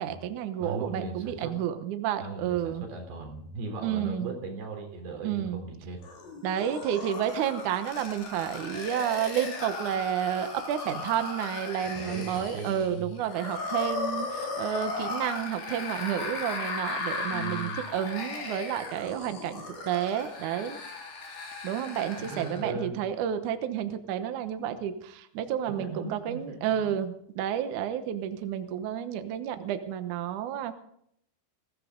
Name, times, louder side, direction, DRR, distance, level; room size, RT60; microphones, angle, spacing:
voice 1, 0.0-2.8 3.8-4.3 5.2-5.6 6.4-20.8 21.6-30.7, right 10 dB, 75° right, 9 dB, 1.8 m, -31 dB
voice 2, 0.6-1.6 2.2-6.0 12.0-13.1 17.3-17.8 22.2-22.9 25.7-26.9, right 3 dB, 60° right, 2 dB, 5.4 m, -38 dB
sound 1, 6.0-22.7, left 3 dB, 55° left, 5.1 m, -36 dB
20.5 x 16.0 x 3.9 m, 0.70 s
omnidirectional pair, 5.2 m